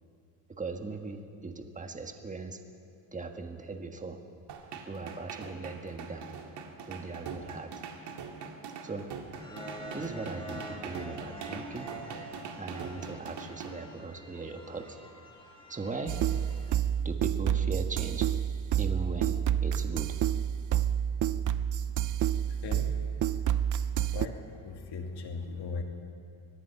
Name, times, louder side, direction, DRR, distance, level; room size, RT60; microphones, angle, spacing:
voice 1, 0.5-2.6 3.1-4.2 4.9-6.3 6.9-7.7 8.8-9.1 9.9-11.9 12.6-15.0 15.7-16.2 17.0-18.3 18.8-20.2, right 3 dB, 15° right, 5 dB, 1.4 m, -39 dB
sound 1, 4.5-13.7, right 5 dB, 60° right, 2.2 m, -42 dB
sound 2, 9.3-16.7, equal, 10° left, 2.1 m, -46 dB
sound 3, 16.1-24.3, right 10 dB, 40° right, 0.6 m, -29 dB
voice 2, 24.1-25.8, left 4 dB, 55° left, 3 dB, 2.5 m, -38 dB
24.0 x 19.0 x 5.7 m, 2.4 s
cardioid pair, 140°, 46 cm